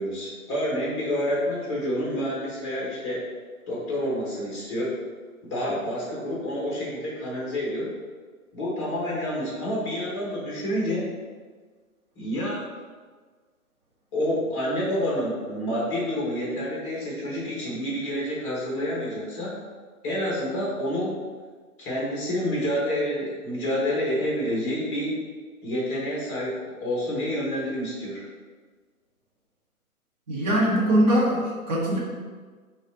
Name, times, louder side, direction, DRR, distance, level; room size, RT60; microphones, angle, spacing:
voice 1, 0.0-3.3 3.7-4.9 5.5-7.9 8.5-11.1 12.2-12.6 14.1-19.5 20.0-21.1 21.8-25.2 25.6-28.3, equal, 20° left, -5 dB, 1.2 m, -28 dB
voice 2, 30.3-32.0, right 1 dB, 30° right, -6 dB, 1.2 m, -22 dB
5.0 x 2.6 x 4.0 m, 1.5 s
figure-of-eight pair, 140°, 44 cm